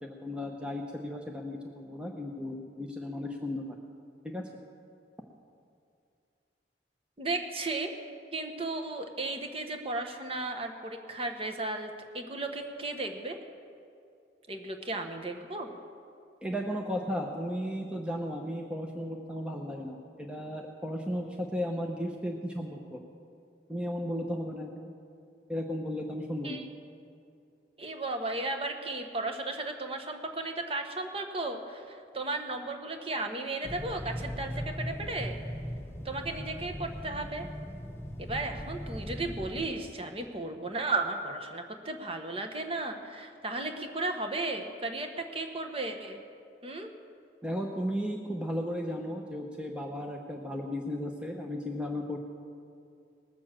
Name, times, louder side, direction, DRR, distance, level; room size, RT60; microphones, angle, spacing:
voice 1, 0.0-3.8 4.2-4.5 16.4-23.0 23.7-24.9 25.5-26.6 47.4-52.2, equal, 5° right, 1 dB, 0.8 m, -35 dB
voice 2, 7.2-7.9 8.3-13.4 14.5-15.7 26.4-26.7 27.8-35.4 36.0-37.5 38.2-46.2 46.6-46.9, right 2 dB, 30° right, 5 dB, 1.1 m, -35 dB
sound 1, 33.6-39.7, equal, 15° left, 1.3 m, -39 dB
19.5 x 7.0 x 7.5 m, 2.5 s
head